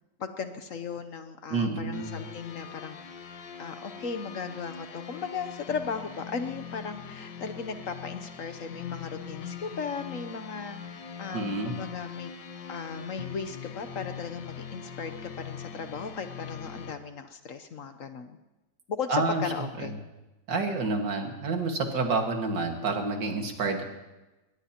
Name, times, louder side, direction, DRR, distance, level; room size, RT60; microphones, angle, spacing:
voice 1, 0.2-3.0 3.2-3.3 3.6-12.3 12.7-18.4 18.9-19.9, left 5 dB, 55° left, 8 dB, 1.1 m, -36 dB
voice 2, 1.5-2.2 11.3-11.7 19.1-19.4 19.8-19.9 20.5-23.8, right 3 dB, 85° right, 3 dB, 2.5 m, -28 dB
sound 1, 1.9-16.9, left 7 dB, 85° left, 1.8 m, -42 dB
22.5 x 19.5 x 2.9 m, 1.1 s
omnidirectional pair, 1.9 m